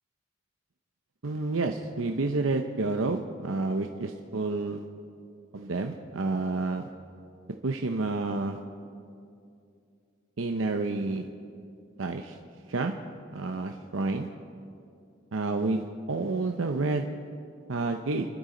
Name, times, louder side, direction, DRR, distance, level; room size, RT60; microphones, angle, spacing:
voice 1, 1.2-4.8 5.5-6.9 7.6-8.6 10.4-11.3 12.0-12.4 12.7-12.9 13.3-14.3 15.3-17.1 17.7-18.3, right 3 dB, 80° right, 4 dB, 0.8 m, -29 dB
29.5 x 12.0 x 3.9 m, 2.5 s
head